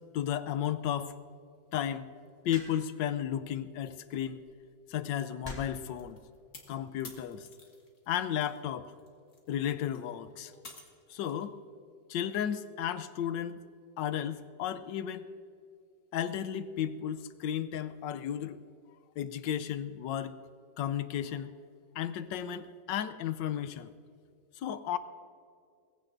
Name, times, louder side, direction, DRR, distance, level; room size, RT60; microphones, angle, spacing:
voice 1, 0.1-1.1 1.7-2.1 2.4-4.4 4.9-6.2 6.7-7.5 8.1-8.9 9.5-10.5 11.1-11.6 12.1-13.6 14.0-15.3 16.1-18.6 19.2-20.4 20.8-21.5 21.9-23.9 24.6-25.0, left 10 dB, 80° left, 12 dB, 1.3 m, -34 dB
sound 1, 2.5-3.0 4.2-4.5 5.4-5.9 6.9-7.2, left 1 dB, 10° left, 3.5 m, -45 dB
sound 2, 6.0-8.6 8.9-11.5, left 3 dB, 45° left, 2.1 m, -52 dB
21.5 x 15.5 x 2.6 m, 2.4 s
omnidirectional pair, 2.0 m